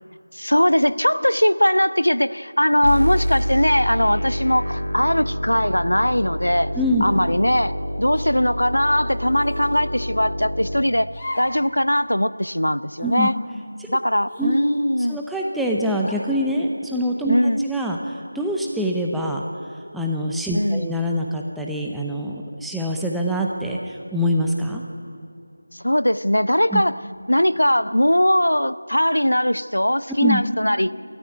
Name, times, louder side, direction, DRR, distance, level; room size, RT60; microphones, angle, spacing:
voice 1, 0.3-6.7 7.0-11.1 11.4-13.4 13.9-15.2 17.3-17.6 20.5-20.9 25.7-27.0 27.3-30.9, equal, 80° left, 15 dB, 0.8 m, -20 dB
sound 1, 2.8-10.8, equal, 60° left, 2.6 m, -27 dB
sound 2, 7.0-7.4 8.1-8.3 9.3-9.8 11.1-11.6 12.0-12.1 12.9-13.4 14.3-15.2 16.0-16.4, left 1 dB, 20° left, 3.0 m, -38 dB
voice 2, 15.1-19.4 19.9-24.8 26.7-26.8 30.2-30.4, equal, ahead, -1 dB, 0.8 m, -24 dB
28.0 x 13.5 x 9.3 m, 2.6 s
figure-of-eight pair, 170°, 0 cm